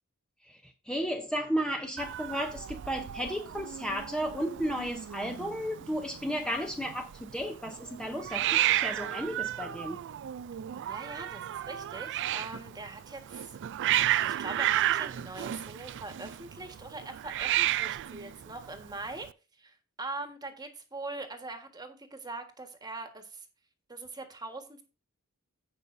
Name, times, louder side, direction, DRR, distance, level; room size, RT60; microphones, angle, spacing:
voice 1, 0.4-10.0, equal, 5° left, 0.8 m, -34 dB
Hiss, 2.0-19.3, right 13 dB, 55° right, 0.3 m, -33 dB
voice 2, 10.9-13.6 14.2-19.3 19.6-23.4 23.9-24.8, right 2 dB, 20° right, 1.5 m, -42 dB
16.0 x 5.5 x 2.6 m
head